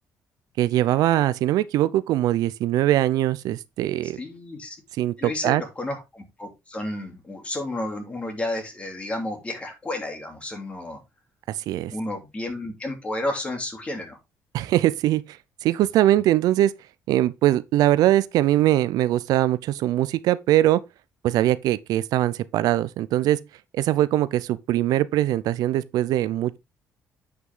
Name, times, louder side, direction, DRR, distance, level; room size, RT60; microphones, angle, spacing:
voice 1, 0.6-4.2 5.0-5.6 11.5-11.9 14.5-16.7 17.1-20.8 21.2-23.4 23.7-26.6, right 14 dB, 85° right, 0.6 m, -22 dB
voice 2, 4.0-4.8 5.2-11.0 11.9-14.2, left 1 dB, 20° left, 3.0 m, -32 dB
9.4 x 5.9 x 3.7 m
cardioid pair, 140°, 6 cm